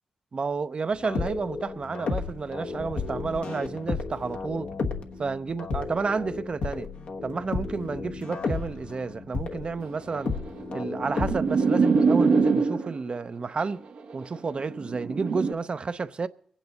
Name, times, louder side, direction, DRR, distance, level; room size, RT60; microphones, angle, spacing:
voice 1, 0.3-4.7 5.2-6.9 7.2-10.4 10.7-13.8 14.1-16.3, right 4 dB, 50° right, 0.6 m, -31 dB
sound 1, 0.9-11.5, left 4 dB, 80° left, 1.1 m, -33 dB
sound 2, 10.0-13.1 14.0-15.5, right 4 dB, 85° right, 1.2 m, -24 dB
23.5 x 9.0 x 4.0 m
cardioid pair, 50°, 2 cm